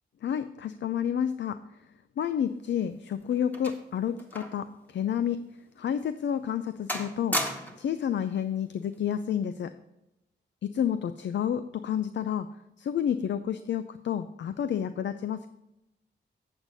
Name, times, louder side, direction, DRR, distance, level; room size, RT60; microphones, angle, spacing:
voice 1, 0.2-1.6 2.2-5.4 5.8-7.5 7.8-9.7 10.6-12.5 12.8-15.5, left 9 dB, 70° left, 12 dB, 0.5 m, -30 dB
sound 1, 2.6-4.7 5.0-5.2 5.8-5.9 6.4-6.6 6.9-7.9 8.9-9.2, equal, 10° left, 1.6 m, -35 dB
8.2 x 7.8 x 4.0 m, 0.92 s
cardioid pair, 60°, 20 cm